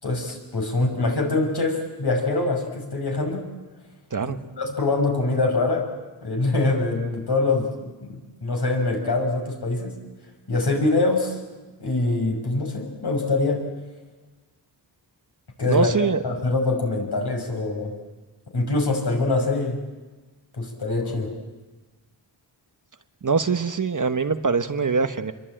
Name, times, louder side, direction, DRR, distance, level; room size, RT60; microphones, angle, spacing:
voice 1, 0.0-3.5 4.2-5.9 6.2-10.0 10.5-11.4 11.8-13.7 15.6-15.9 16.2-17.9 18.5-19.8 20.6-21.3, left 2 dB, 55° left, 2 dB, 6.0 m, -24 dB
voice 2, 15.7-16.2 23.2-25.3, right 5 dB, 40° right, 9 dB, 1.1 m, -23 dB
28.0 x 22.5 x 9.0 m, 1.2 s
wide cardioid pair, 130°, 46 cm